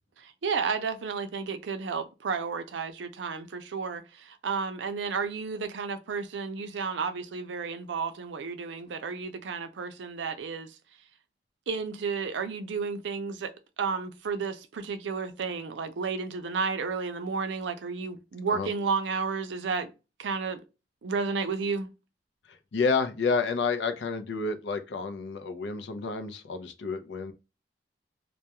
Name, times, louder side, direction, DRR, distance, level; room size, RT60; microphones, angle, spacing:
voice 1, 0.2-10.8 11.7-19.9 20.2-20.6 21.0-21.9, right 5 dB, 80° right, 0.4 m, -32 dB
voice 2, 22.7-27.3, left 4 dB, 70° left, 0.5 m, -29 dB
2.2 x 2.1 x 2.8 m
head